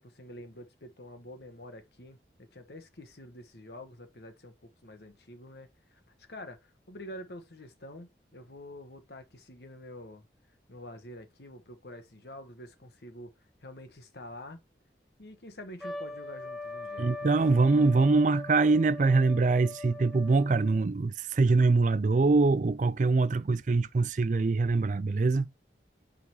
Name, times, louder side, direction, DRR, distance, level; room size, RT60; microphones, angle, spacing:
voice 1, 0.0-6.0 6.3-10.3 10.7-14.6 15.2-17.1, left 1 dB, 70° left, 1.3 m, -47 dB
Trumpet, 15.8-20.8, left 2 dB, ahead, 1.1 m, -41 dB
voice 2, 17.0-25.5, right 3 dB, 45° right, 0.4 m, -24 dB
9.4 x 3.8 x 3.0 m
head